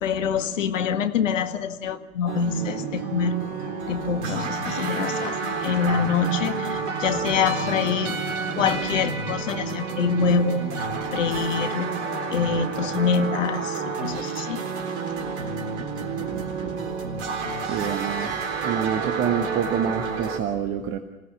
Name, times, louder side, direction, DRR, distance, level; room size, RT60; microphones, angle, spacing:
voice 1, 0.0-3.3 3.9-8.2 8.6-11.9 12.3-14.6, left 6 dB, 60° left, 1.9 m, -25 dB
sound 1, 2.3-20.4, right 4 dB, 50° right, 3.8 m, -29 dB
voice 2, 16.3-16.9 17.6-21.0, right 8 dB, 30° right, 1.5 m, -28 dB
25.5 x 17.5 x 7.2 m
figure-of-eight pair, 105°, 43 cm